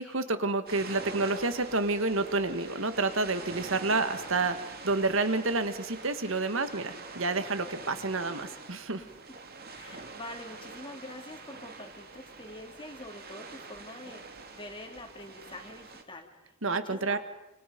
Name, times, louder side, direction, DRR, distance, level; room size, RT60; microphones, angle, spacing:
voice 1, 0.0-9.0 16.6-17.2, right 3 dB, 65° right, 10 dB, 1.8 m, -29 dB
sound 1, 0.7-16.0, right 4 dB, 45° right, 2.5 m, -45 dB
voice 2, 3.6-4.1 9.0-9.1 9.7-16.3 16.7-17.2, left 1 dB, 25° left, 3 dB, 3.1 m, -46 dB
29.5 x 29.0 x 5.3 m, 0.97 s
head